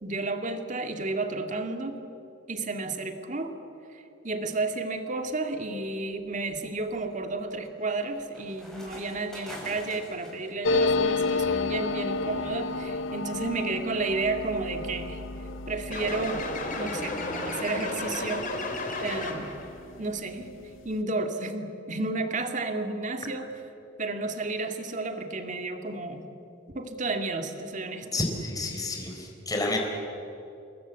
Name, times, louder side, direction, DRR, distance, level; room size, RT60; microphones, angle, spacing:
voice 1, 0.0-2.0 2.5-3.5 3.9-15.2 15.7-16.4 16.8-18.4 19.0-19.5 20.0-20.5 20.8-23.5 24.0-26.2 26.7-28.2, right 3 dB, 40° right, 5 dB, 2.2 m, -32 dB
sound 1, 5.0-5.3 5.9-10.5, equal, 5° left, 6.0 m, -46 dB
sound 2, 10.6-19.8 20.1-20.2 20.4-21.0, left 3 dB, 80° left, 0.7 m, -31 dB
sound 3, 15.9-19.7, left 2 dB, 45° left, 3.6 m, -33 dB
voice 2, 28.1-29.8, left 2 dB, 20° left, 1 dB, 4.3 m, -30 dB
28.0 x 22.0 x 8.4 m, 2.8 s
head